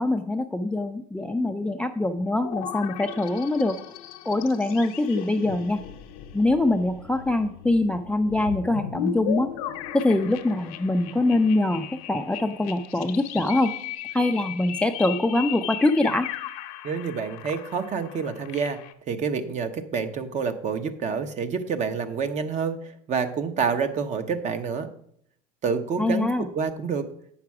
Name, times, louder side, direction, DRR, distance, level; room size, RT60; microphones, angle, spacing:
voice 1, 0.0-3.8 4.3-5.8 6.3-9.5 9.9-13.7 14.1-16.3 26.0-26.5, left 2 dB, 5° left, 9 dB, 0.4 m, -24 dB
sound 1, 2.4-18.9, left 11 dB, 85° left, 0.8 m, -37 dB
voice 2, 16.8-18.8 19.1-24.9 25.6-27.1, right 6 dB, 40° right, 9 dB, 0.9 m, -28 dB
8.6 x 5.8 x 4.7 m, 0.68 s
supercardioid pair, 105°, 18 cm